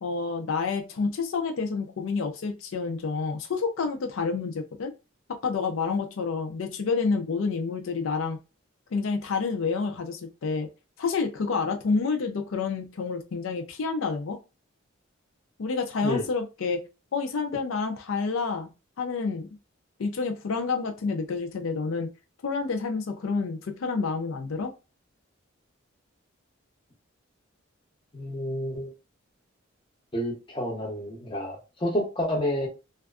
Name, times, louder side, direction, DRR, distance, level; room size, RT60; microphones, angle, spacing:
voice 1, 0.0-4.9 5.3-8.4 8.9-10.7 11.0-14.4 15.6-16.8 17.1-18.7 19.0-19.5 20.0-22.1 22.4-24.7, left 4 dB, 75° left, 0.4 m, -29 dB
voice 2, 28.1-28.9 30.1-32.7, equal, 25° left, 0.7 m, -29 dB
2.5 x 2.3 x 2.3 m
head